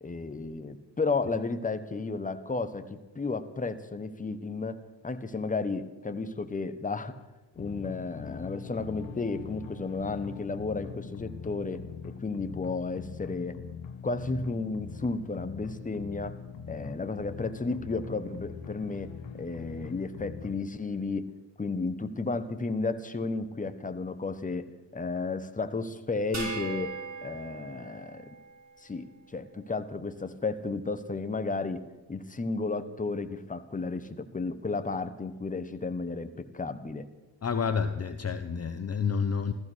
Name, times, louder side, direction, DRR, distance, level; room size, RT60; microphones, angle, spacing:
voice 1, 0.0-7.1 7.6-13.6 14.0-16.4 16.7-21.3 21.6-24.7 24.9-26.9 27.2-28.2 28.8-37.1, left 3 dB, 15° left, 10 dB, 1.2 m, -33 dB
sound 1, 7.6-20.5, left 6 dB, 80° left, 1.5 m, -42 dB
sound 2, 26.3-28.9, right 3 dB, 35° right, 4.8 m, -39 dB
voice 2, 37.4-39.5, left 6 dB, 35° left, 10 dB, 0.9 m, -29 dB
15.0 x 14.5 x 6.4 m, 1.2 s
cardioid pair, 90°, 44 cm